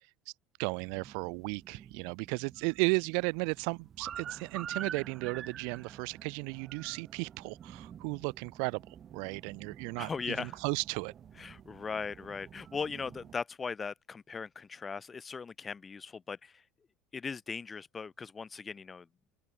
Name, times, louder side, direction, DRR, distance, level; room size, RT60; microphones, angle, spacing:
voice 1, 0.6-8.8 9.1-11.1, right 40 dB or more, 75° right, 1.7 m, -34 dB
sound 1, 0.7-13.3, right 9 dB, 30° right, 4.0 m, -47 dB
voice 2, 10.0-10.6 11.4-16.6 17.1-19.1, left 5 dB, 20° left, 5.8 m, -39 dB
open air
cardioid pair, 155°, 0 cm